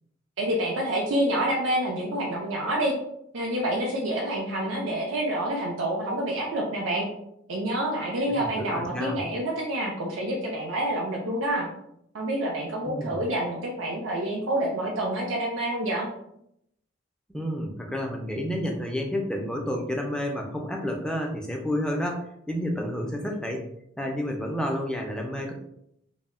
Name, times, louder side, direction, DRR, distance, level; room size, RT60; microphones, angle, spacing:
voice 1, 0.4-2.9 3.3-7.1 7.5-11.7 12.1-16.1, right 1 dB, 80° right, -3 dB, 0.5 m, -28 dB
voice 2, 8.2-9.2 12.9-13.2 17.3-23.6 24.0-25.5, equal, 5° left, 1 dB, 0.3 m, -30 dB
2.1 x 2.0 x 3.5 m, 0.76 s
head